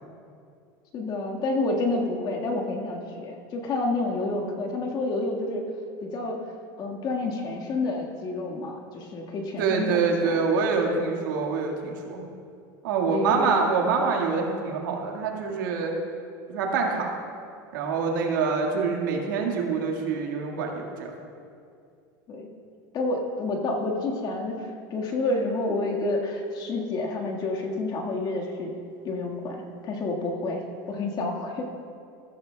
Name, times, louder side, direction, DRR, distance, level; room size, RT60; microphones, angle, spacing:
voice 1, 0.9-5.6 6.0-6.4 6.8-10.5 10.9-11.1 13.1-13.5 22.3-22.5 22.9-28.7 29.1-31.7, left 2 dB, 40° left, 1 dB, 1.7 m, -29 dB
voice 2, 9.6-12.2 12.8-15.9 16.5-17.1 17.7-21.1, right 5 dB, 85° right, 0 dB, 1.8 m, -25 dB
14.0 x 14.0 x 2.3 m, 2.4 s
supercardioid pair, 120°, 11 cm